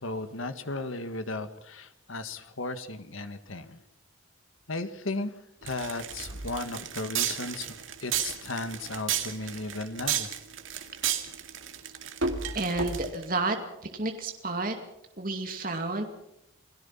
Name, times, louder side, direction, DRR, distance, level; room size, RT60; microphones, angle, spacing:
voice 1, 0.0-3.8 4.7-5.3 5.6-10.3, left 2 dB, 85° left, 10 dB, 1.8 m, -35 dB
sound 1, 5.7-13.3, right 7 dB, 80° right, 2.3 m, -32 dB
voice 2, 12.5-13.6 13.9-14.8 15.2-16.0, right 2 dB, 45° right, 4 dB, 2.3 m, -30 dB
28.0 x 18.0 x 5.8 m, 0.82 s
head